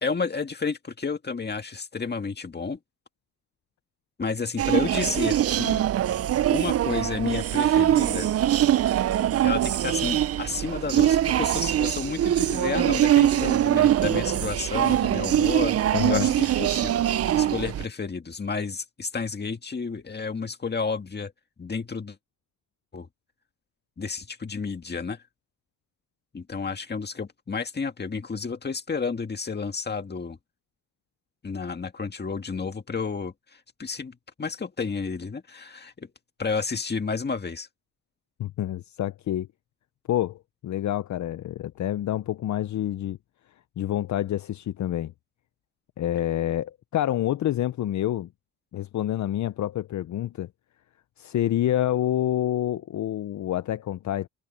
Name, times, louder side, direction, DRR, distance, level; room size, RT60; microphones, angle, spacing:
voice 1, 0.0-2.8 4.2-5.8 6.5-8.3 9.4-15.8 16.1-16.9 17.3-21.3 21.6-22.2 22.9-23.1 24.0-25.2 26.3-30.4 31.4-36.1 36.4-37.7, left 5 dB, 30° left, 1.9 m, -31 dB
sound 1, 4.6-17.8, right 11 dB, 45° right, 0.4 m, -23 dB
voice 2, 15.9-16.3 38.4-39.5 40.1-43.2 43.8-45.1 46.0-48.3 48.7-50.5 51.2-54.3, left 12 dB, 60° left, 0.6 m, -27 dB
cardioid pair, 110°, 33 cm